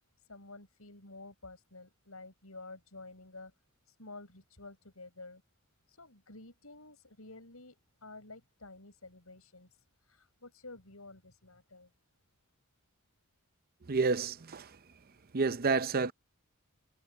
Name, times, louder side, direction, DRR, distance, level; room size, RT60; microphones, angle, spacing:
voice 1, 0.3-3.5 3.9-5.4 5.9-11.9, left 2 dB, 80° left, 7.8 m, -51 dB
voice 2, 13.9-14.8 15.3-16.1, right 4 dB, 45° right, 0.7 m, -29 dB
head